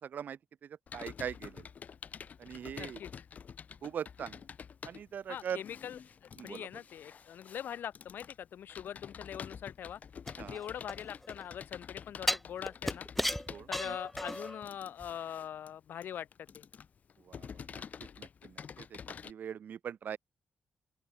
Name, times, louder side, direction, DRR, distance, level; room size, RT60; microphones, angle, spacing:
voice 1, 0.0-1.7 2.4-3.0 3.8-4.4 4.8-5.6 6.4-6.7 10.4-10.6 13.5-14.0 17.2-17.8 18.2-20.2, right 8 dB, 60° right, 0.4 m, -42 dB
Computer keyboard, 0.9-19.3, left 7 dB, 50° left, 0.6 m, -48 dB
voice 2, 2.8-3.2 5.3-6.0 6.4-10.0 10.4-13.1 13.7-16.6, left 9 dB, 80° left, 0.7 m, -42 dB
sound 1, 10.3-11.4 12.3-14.6 15.0-15.1, equal, 5° left, 0.3 m, -35 dB
open air
wide cardioid pair, 140°, 3 cm